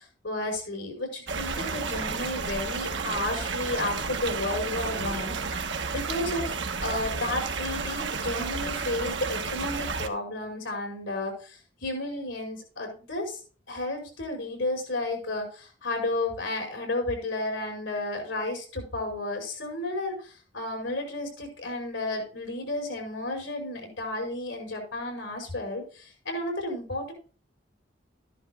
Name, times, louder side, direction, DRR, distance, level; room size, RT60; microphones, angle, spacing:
voice 1, 0.0-5.3 5.9-13.4 13.7-27.1, left 2 dB, 85° left, 3 dB, 5.4 m, -32 dB
sound 1, 1.3-10.1, right 4 dB, 75° right, 1.1 m, -32 dB
13.0 x 11.0 x 2.3 m, 0.37 s
head